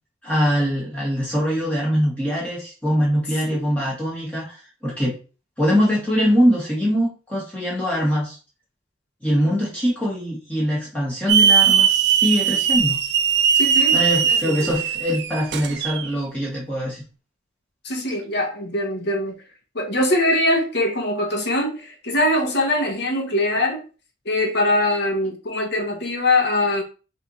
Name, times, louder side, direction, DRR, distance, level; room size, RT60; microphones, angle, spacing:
voice 1, 0.2-5.2 5.6-8.4 9.2-13.0 13.9-17.0, equal, 5° left, 1.1 m, -22 dB
Hiss / Alarm, 11.3-16.1, right 7 dB, 55° right, 0.4 m, -19 dB
voice 2, 13.5-14.8 17.8-19.4 19.7-23.8 24.2-26.8, left 1 dB, 55° left, 1.0 m, -22 dB
3.3 x 2.8 x 3.7 m
head